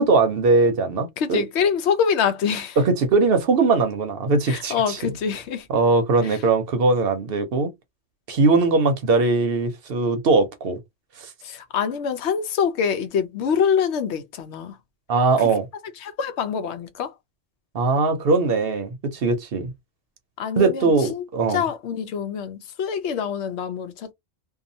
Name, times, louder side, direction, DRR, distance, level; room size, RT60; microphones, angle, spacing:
voice 1, 0.0-1.4 2.8-5.0 5.7-7.7 8.3-10.8 11.2-11.3 15.1-15.7 17.7-19.7 20.6-21.6, right 3 dB, 65° right, 0.8 m, -20 dB
voice 2, 1.2-2.8 4.5-5.7 6.2-6.4 11.4-14.8 15.4-15.5 16.0-17.1 20.4-21.2 21.5-24.1, left 7 dB, 85° left, 0.9 m, -25 dB
2.8 x 2.3 x 2.6 m
omnidirectional pair, 1.1 m